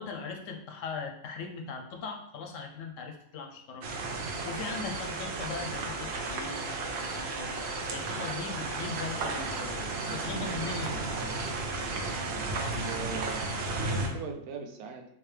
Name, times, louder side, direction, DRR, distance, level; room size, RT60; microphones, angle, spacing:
voice 1, 0.0-3.9 4.4-7.6 7.9-11.0, left 5 dB, 70° left, 3 dB, 0.9 m, -39 dB
sound 1, 3.8-14.1, right 3 dB, 60° right, 0.7 m, -33 dB
voice 2, 12.6-15.1, right 4 dB, 90° right, 3 dB, 1.1 m, -40 dB
3.7 x 2.8 x 3.2 m, 0.74 s
omnidirectional pair, 1.5 m